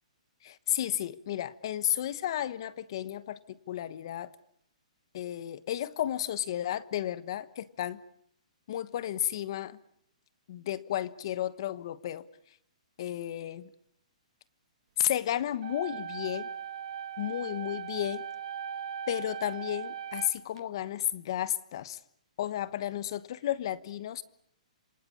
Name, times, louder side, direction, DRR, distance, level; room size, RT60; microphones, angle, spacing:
voice 1, 0.4-4.3 5.1-8.0 8.7-9.8 10.5-12.2 13.0-13.7 15.0-16.5 17.2-18.2 19.1-22.0 22.4-24.2, left 11 dB, 40° left, 17 dB, 1.1 m, -33 dB
sound 1, 15.6-20.6, right 8 dB, 50° right, 1.6 m, -39 dB
27.5 x 25.0 x 8.6 m, 0.70 s
hypercardioid pair, 175°, 4 cm